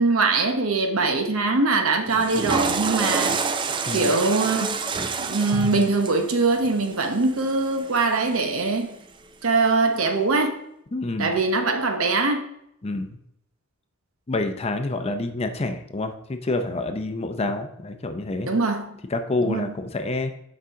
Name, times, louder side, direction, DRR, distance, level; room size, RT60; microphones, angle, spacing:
voice 1, 0.0-3.4 3.9-4.7 5.2-8.9 9.4-10.5 11.2-12.4 18.5-19.0 19.4-19.7, right 3 dB, 80° right, 5 dB, 0.9 m, -22 dB
Water / Toilet flush, 2.1-8.3, right 4 dB, 25° right, 0.3 m, -28 dB
voice 2, 10.9-11.3 12.8-13.2 14.3-18.5 19.1-20.3, left 2 dB, 30° left, 7 dB, 0.6 m, -27 dB
7.0 x 5.1 x 3.7 m, 0.75 s
head